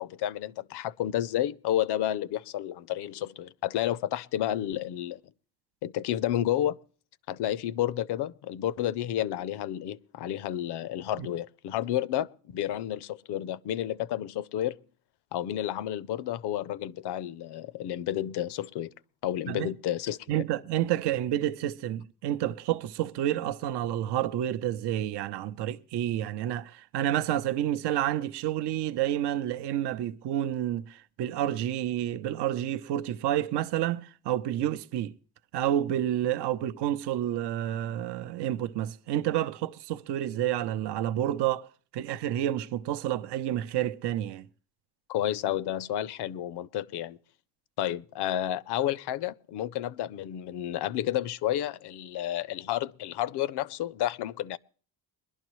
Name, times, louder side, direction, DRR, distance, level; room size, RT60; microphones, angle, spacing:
voice 1, 0.0-5.2 5.8-6.8 7.3-14.8 15.3-18.9 19.2-20.2 45.1-47.2 47.8-54.6, left 12 dB, 75° left, 0.6 m, -31 dB
voice 2, 20.3-35.1 35.5-41.7 41.9-44.5, right 12 dB, 85° right, 0.6 m, -29 dB
22.0 x 11.5 x 3.1 m
cardioid pair, 110°, 40 cm